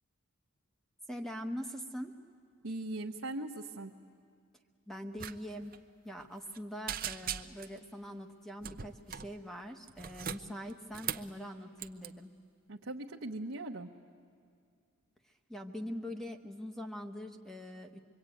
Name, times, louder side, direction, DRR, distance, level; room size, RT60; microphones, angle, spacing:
voice 1, 1.1-2.1 4.9-5.7 6.0-12.3 15.5-18.0, equal, ahead, 5 dB, 1.1 m, -43 dB
voice 2, 2.6-3.9 12.7-13.9, right 2 dB, 65° right, -1 dB, 1.0 m, -39 dB
sound 1, 5.2-5.4 5.6-5.8 6.2-6.6 6.9-7.8 8.6-9.3 9.9-11.3 11.8-12.1, right 9 dB, 45° right, 0.7 m, -40 dB
25.0 x 23.5 x 9.2 m, 2.3 s
head